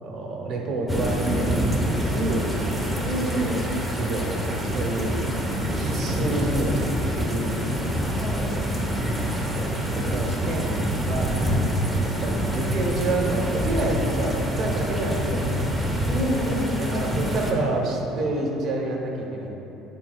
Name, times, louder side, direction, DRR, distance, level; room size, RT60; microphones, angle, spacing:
voice 1, 0.0-2.5 3.4-5.1 5.7-7.6 9.5-11.4 12.0-15.5 16.8-19.5, right 2 dB, 40° right, -1 dB, 1.0 m, -28 dB
sound 1, 0.9-17.5, equal, 5° right, 0.6 m, -26 dB
voice 2, 3.0-3.7 8.1-8.5 10.7-10.9 16.1-17.2, equal, 25° left, -5 dB, 1.3 m, -29 dB
9.5 x 4.6 x 2.3 m, 3.0 s
cardioid pair, 150°, 0 cm